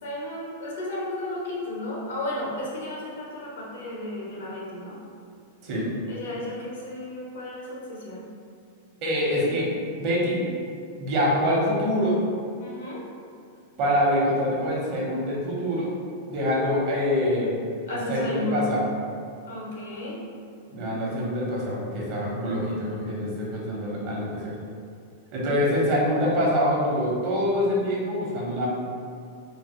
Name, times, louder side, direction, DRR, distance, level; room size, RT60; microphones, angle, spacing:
voice 1, 0.0-5.0 6.1-8.3 12.6-13.0 17.9-18.7 19.5-20.2, left 1 dB, 80° left, -5 dB, 1.0 m, -33 dB
voice 2, 9.0-9.7 10.0-10.5 11.0-12.2 13.8-15.9 16.3-17.5 17.9-18.8 20.7-24.5 25.3-28.7, equal, 45° right, -5 dB, 1.0 m, -25 dB
3.8 x 2.0 x 3.0 m, 2.4 s
supercardioid pair, 140°, 0 cm